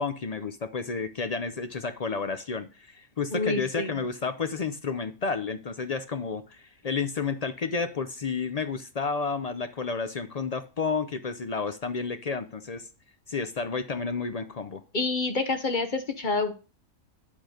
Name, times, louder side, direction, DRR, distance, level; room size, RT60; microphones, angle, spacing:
voice 1, 0.0-12.9 13.3-14.8, left 5 dB, 60° left, 10 dB, 0.4 m, -31 dB
voice 2, 3.3-3.9 14.9-16.5, left 3 dB, 40° left, 7 dB, 1.0 m, -27 dB
10.5 x 3.8 x 6.4 m, 0.33 s
omnidirectional pair, 1.5 m